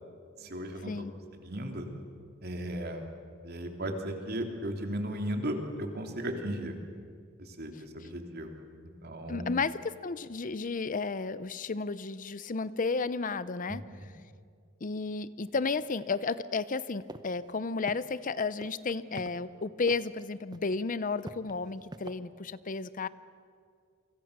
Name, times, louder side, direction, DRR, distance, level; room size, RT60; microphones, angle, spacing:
voice 1, 0.4-1.1 1.3-1.9 2.4-3.0 3.4-6.7 7.4-8.6 9.0-9.5 13.7-13.8, right 1 dB, 55° right, 3 dB, 3.3 m, -36 dB
voice 2, 9.3-13.8 14.8-23.1, left 4 dB, 40° left, 16 dB, 0.6 m, -33 dB
sound 1, 17.1-17.2 17.5-17.6 17.9-18.3 18.6-19.3 19.9-20.2 20.5-20.8 21.2-22.1, right 1 dB, 20° right, 1.1 m, -42 dB
29.5 x 25.0 x 6.7 m, 2.3 s
head